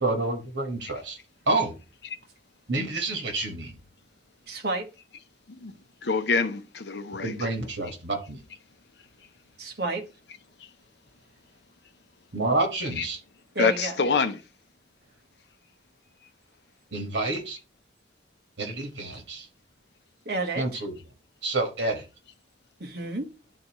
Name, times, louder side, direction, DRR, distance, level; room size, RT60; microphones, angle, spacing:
voice 1, 0.0-1.2 1.5-1.7 2.7-3.7 7.1-8.4 12.3-13.2 16.9-17.6 18.6-19.5 20.6-20.9 21.4-22.0, right 2 dB, 85° right, 1.6 m, -28 dB
voice 2, 4.5-4.9 9.6-10.1 13.5-14.0 20.3-20.8 22.8-23.3, right 3 dB, 60° right, 1.2 m, -30 dB
voice 3, 6.0-7.5 13.0-13.1 13.6-14.4, left 4 dB, 70° left, 0.7 m, -26 dB
11.5 x 4.0 x 3.0 m
head